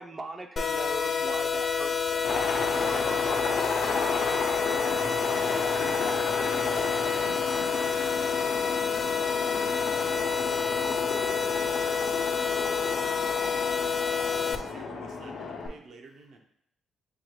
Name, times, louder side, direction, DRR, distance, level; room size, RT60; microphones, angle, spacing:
voice 1, 0.0-2.8, right 2 dB, 25° right, 4 dB, 0.5 m, -40 dB
sound 1, 0.6-14.6, left 6 dB, 45° left, 0.4 m, -28 dB
Sink (filling or washing), 2.0-9.3, right 2 dB, 85° right, 1.5 m, -53 dB
Aircraft, 2.2-15.7, left 4 dB, 85° left, 0.9 m, -33 dB
voice 2, 2.6-3.6 14.8-15.6, left 2 dB, 65° left, -3 dB, 0.9 m, -48 dB
voice 3, 4.9-9.8 12.7-16.4, right 4 dB, 70° right, 3 dB, 0.7 m, -50 dB
6.6 x 2.3 x 3.0 m, 0.72 s
cardioid pair, 90°, 0 cm